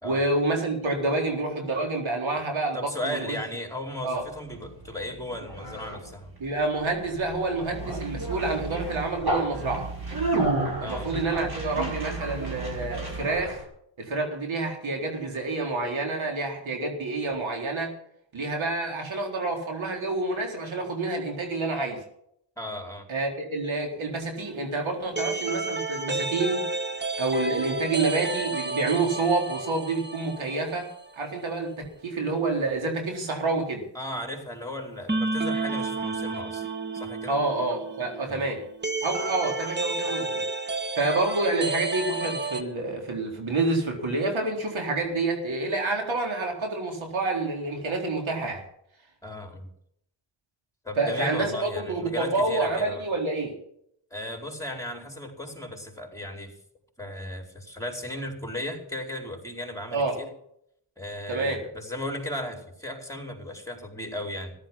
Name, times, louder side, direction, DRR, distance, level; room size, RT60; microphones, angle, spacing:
voice 1, 0.0-2.8 3.0-3.4 4.0-4.2 6.4-9.9 10.8-13.6 14.0-17.9 18.3-22.0 23.1-26.6 27.2-30.9 31.2-31.7 32.0-33.8 37.3-38.6 39.0-40.4 41.0-48.6 51.0-53.6 59.9-60.1 61.3-61.6, right 3 dB, 70° right, 2 dB, 4.1 m, -28 dB
voice 2, 2.7-6.3 10.8-11.1 22.6-23.1 33.9-36.7 36.9-37.4 38.3-38.4 49.2-49.7 50.8-53.1 54.1-56.6 57.0-60.3 61.0-64.5, left 1 dB, 5° left, 2 dB, 4.9 m, -36 dB
Conversation, 4.2-13.6, right 2 dB, 50° right, 5.9 m, -32 dB
sound 1, 24.4-31.1 31.3-31.4 35.1-42.6, right 3 dB, 20° right, 1.6 m, -31 dB
14.5 x 11.5 x 5.9 m, 0.72 s
cardioid pair, 60°, 48 cm